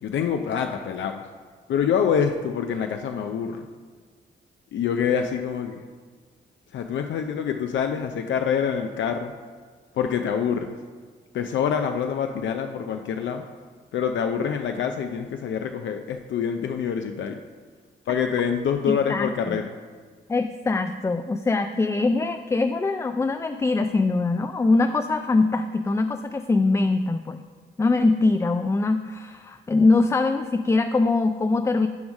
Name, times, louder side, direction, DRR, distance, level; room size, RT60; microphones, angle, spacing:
voice 1, 0.0-1.2 1.7-3.7 4.7-5.9 6.7-9.3 9.9-10.8 11.3-13.4 13.9-17.4 18.1-19.7, left 7 dB, 70° left, 5 dB, 0.5 m, -26 dB
voice 2, 18.9-19.6 20.3-27.4 27.8-31.9, left 3 dB, 15° left, 8 dB, 0.3 m, -22 dB
7.1 x 4.7 x 5.3 m, 1.5 s
cardioid pair, 65°, 20 cm